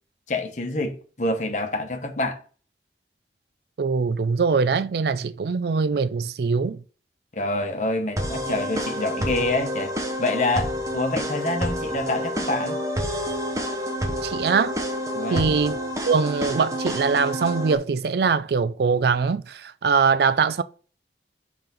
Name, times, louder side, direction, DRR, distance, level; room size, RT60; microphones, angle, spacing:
voice 1, 0.3-2.4 7.3-12.8 15.1-15.5, left 2 dB, 45° left, 1.0 m, -27 dB
voice 2, 3.8-6.8 14.2-14.8 15.3-15.8 16.1-20.6, right 5 dB, 65° right, 0.4 m, -22 dB
sound 1, 8.2-17.8, equal, 20° right, 0.8 m, -28 dB
5.6 x 3.5 x 5.8 m
head